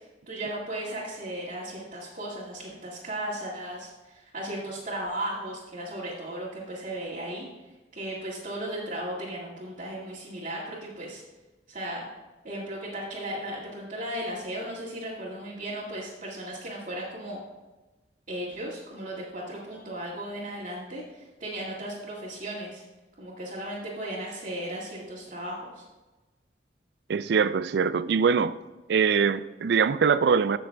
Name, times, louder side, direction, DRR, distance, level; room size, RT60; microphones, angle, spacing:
voice 1, 0.3-7.5 7.9-11.2 11.7-12.1 12.4-17.4 18.3-22.8 23.2-25.8, right 1 dB, 50° right, -8 dB, 1.9 m, -36 dB
voice 2, 27.1-28.6 28.9-30.6, right 6 dB, 65° right, 15 dB, 0.4 m, -23 dB
15.0 x 6.3 x 2.3 m, 1.2 s
head